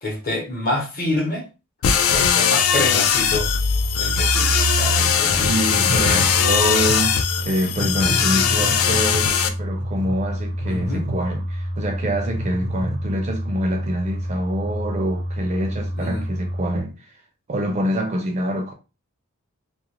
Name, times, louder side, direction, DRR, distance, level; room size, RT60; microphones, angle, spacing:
voice 1, 0.0-1.4 2.1-3.5 4.0-5.9 8.0-8.3 10.7-11.1 15.9-16.2, left 1 dB, 40° left, 0.9 m, -27 dB
sound 1, 1.8-9.5, left 7 dB, 70° left, 0.3 m, -20 dB
sound 2, 3.1-16.8, right 1 dB, 90° right, 0.5 m, -27 dB
voice 2, 5.4-17.1 17.5-18.7, equal, 30° right, 0.4 m, -26 dB
2.4 x 2.1 x 2.9 m
head